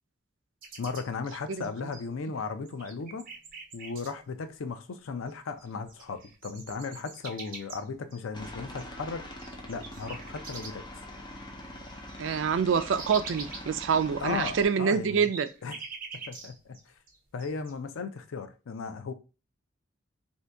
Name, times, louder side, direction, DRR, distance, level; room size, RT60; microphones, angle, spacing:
sound 1, 0.6-2.3 2.7-4.1 5.3-5.4 5.6-11.0 11.3-11.4 11.7-16.8 17.1-17.7, right 4 dB, 45° right, 0.8 m, -44 dB
voice 1, 0.8-3.3 3.7-9.3 9.7-10.8 14.2-15.3 15.6-15.8 16.3-16.9 17.3-19.1, left 4 dB, 85° left, 0.5 m, -36 dB
Aircraft, 8.3-14.6, left 1 dB, 25° left, 0.6 m, -43 dB
voice 2, 12.2-15.5, right 6 dB, 65° right, 0.3 m, -26 dB
2.7 x 2.7 x 3.3 m
head